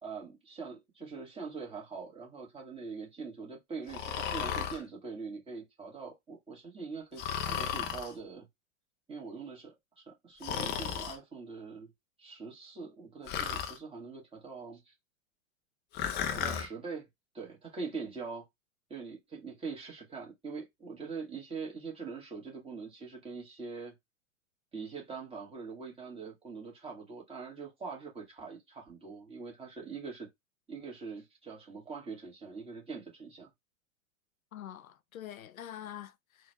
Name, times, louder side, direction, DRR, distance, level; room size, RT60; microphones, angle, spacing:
voice 1, 0.0-7.2 7.5-8.5 9.1-11.9 12.2-14.9 16.3-17.1 17.3-18.4 18.9-23.9 24.7-30.3 30.7-33.5, right 4 dB, 15° right, 1.7 m, -43 dB
Breathing, 3.9-4.8 7.2-8.1 10.4-11.2 13.3-13.8 15.9-16.7, left 8 dB, 25° left, 0.6 m, -34 dB
voice 2, 34.5-36.5, left 11 dB, 90° left, 0.5 m, -45 dB
3.9 x 2.5 x 3.3 m
hypercardioid pair, 105°, 40 cm